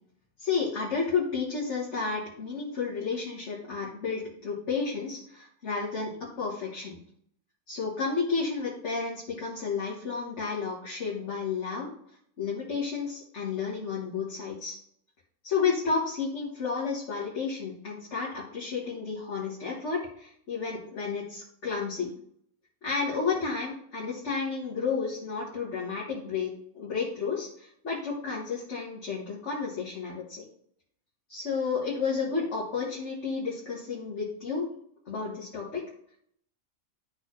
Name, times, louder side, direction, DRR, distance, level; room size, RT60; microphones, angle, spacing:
voice 1, 0.4-7.0 7.7-11.9 12.4-14.8 15.4-22.1 22.8-30.5 31.3-34.7 35.1-35.8, left 5 dB, 55° left, -5 dB, 1.7 m, -31 dB
11.5 x 4.0 x 3.1 m, 0.67 s
omnidirectional pair, 1.5 m